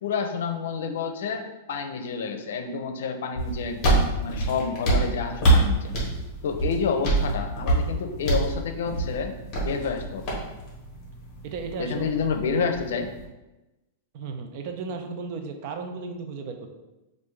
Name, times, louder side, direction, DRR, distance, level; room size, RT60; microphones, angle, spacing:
voice 1, 0.0-5.9 6.4-9.3 9.6-10.3 11.8-13.1, left 5 dB, 70° left, 6 dB, 0.6 m, -29 dB
sound 1, 3.4-13.2, right 2 dB, 20° left, 1.3 m, -26 dB
voice 2, 11.4-12.1 14.1-16.7, right 4 dB, 40° right, 5 dB, 0.5 m, -34 dB
5.6 x 2.5 x 3.2 m, 1.0 s
supercardioid pair, 175°, 0 cm